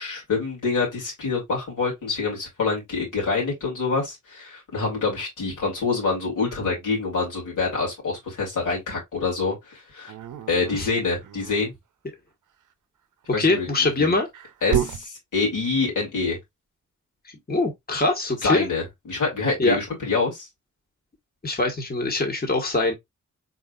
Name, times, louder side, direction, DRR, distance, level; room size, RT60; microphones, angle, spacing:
voice 1, 0.0-10.1 10.5-11.7 13.3-14.1 14.6-16.4 18.4-20.5, left 4 dB, 90° left, 2.6 m, -26 dB
Dog, 10.1-11.7 13.2-15.1, right 9 dB, 80° right, 0.6 m, -31 dB
voice 2, 13.4-14.3 17.5-18.7 19.6-19.8 21.4-22.9, left 2 dB, 30° left, 1.4 m, -23 dB
4.1 x 4.0 x 2.4 m
cardioid pair, 45°, 30 cm